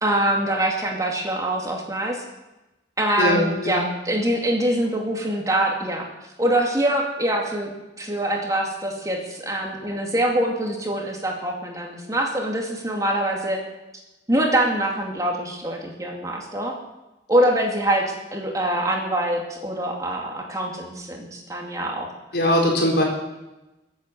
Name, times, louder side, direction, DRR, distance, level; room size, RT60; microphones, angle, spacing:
voice 1, 0.0-2.2 3.0-6.1 6.4-7.7 8.0-13.6 14.3-16.8 17.3-22.1, right 1 dB, 20° right, 0 dB, 2.5 m, -24 dB
voice 2, 3.2-3.9 22.3-23.0, left 1 dB, 70° left, -1 dB, 4.5 m, -21 dB
21.5 x 8.6 x 7.7 m, 1.0 s
head